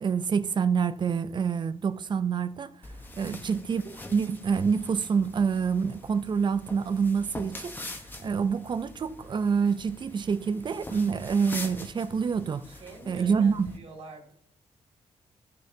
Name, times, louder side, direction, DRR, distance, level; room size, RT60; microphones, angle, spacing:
voice 1, 0.0-2.7 3.2-7.8 8.2-12.6 13.1-13.7, right 6 dB, 40° right, 0.5 m, -27 dB
sound 1, 2.8-13.8, left 2 dB, 15° left, 1.0 m, -44 dB
voice 2, 3.2-3.6 12.6-14.3, right 3 dB, 60° right, 2.2 m, -46 dB
13.5 x 6.6 x 2.8 m
cardioid pair, 105°, 12 cm